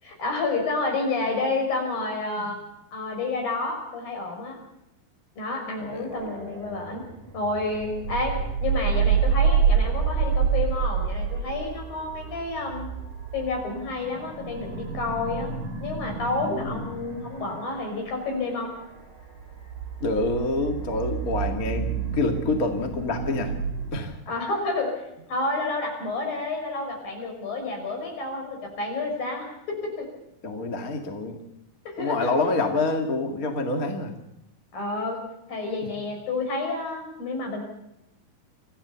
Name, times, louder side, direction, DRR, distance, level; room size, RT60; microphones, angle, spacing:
voice 1, 0.0-2.6 2.9-4.6 5.4-7.0 7.3-12.9 13.3-15.5 15.8-18.7 24.3-30.1 31.9-32.3 34.7-35.2 35.5-37.6, left 3 dB, 60° left, 2 dB, 7.4 m, -30 dB
voice 2, 5.8-6.1 16.4-16.9 20.0-21.9 22.1-23.5 23.9-24.1 30.4-31.4 32.0-34.1, left 2 dB, 30° left, 3 dB, 1.8 m, -27 dB
sound 1, 6.1-23.9, right 6 dB, 50° right, 6.4 m, -28 dB
25.0 x 15.5 x 7.0 m, 0.84 s
omnidirectional pair, 4.6 m